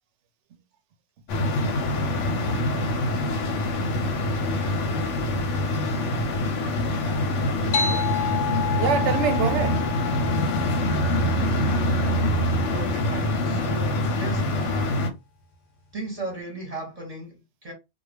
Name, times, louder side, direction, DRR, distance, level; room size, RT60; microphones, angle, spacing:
sound 1, 1.3-15.1, left 1 dB, 80° left, 1.0 m, -25 dB
sound 2, 7.7-12.7, left 7 dB, 55° left, 0.5 m, -31 dB
voice 1, 7.7-8.2 10.7-11.2 12.7-15.1 15.9-17.7, right 2 dB, 35° right, 0.9 m, -37 dB
voice 2, 8.8-9.8 10.6-10.8, right 8 dB, 80° right, 0.9 m, -27 dB
2.4 x 2.2 x 3.2 m
omnidirectional pair, 1.2 m